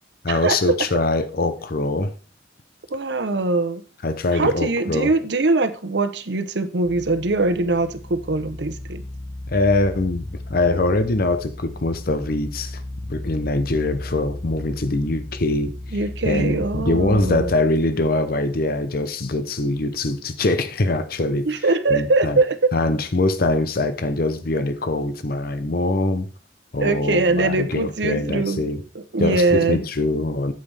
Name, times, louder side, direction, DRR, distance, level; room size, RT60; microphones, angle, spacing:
voice 1, 0.2-2.1 4.0-5.1 9.5-12.8 13.1-15.7 16.2-21.5 21.9-22.4 22.7-26.3 26.7-28.8 29.2-30.5, left 2 dB, 55° left, 0.8 m, -23 dB
voice 2, 2.9-3.8 4.3-9.0 15.9-17.5 21.4-22.7 26.8-28.6 28.9-29.8, right 3 dB, 65° right, 0.8 m, -22 dB
sound 1, 6.8-17.5, left 1 dB, 85° left, 2.5 m, -35 dB
8.7 x 7.8 x 3.4 m
head